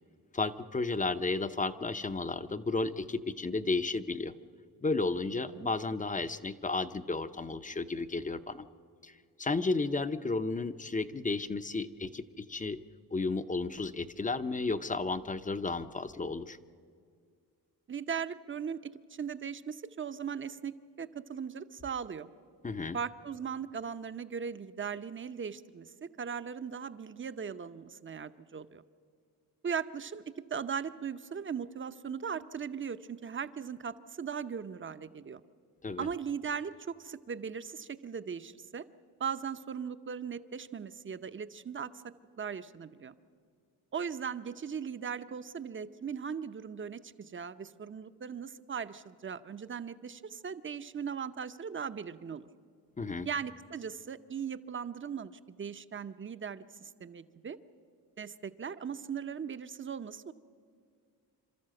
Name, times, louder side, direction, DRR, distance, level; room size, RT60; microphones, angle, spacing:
voice 1, 0.3-4.3 4.8-8.6 9.0-9.1 9.4-12.8 13.1-16.6 22.6-23.0 35.8-36.1 53.0-53.3, left 3 dB, 20° left, 11 dB, 0.7 m, -33 dB
voice 2, 5.3-5.7 17.9-18.8 19.1-22.3 22.9-25.9 26.2-28.8 29.6-30.2 30.5-35.4 36.0-38.8 39.2-42.0 42.4-43.1 43.9-52.5 53.2-57.6 58.2-60.3, right 6 dB, 30° right, 12 dB, 0.8 m, -38 dB
27.5 x 13.0 x 7.7 m, 2.2 s
cardioid pair, 95°, 38 cm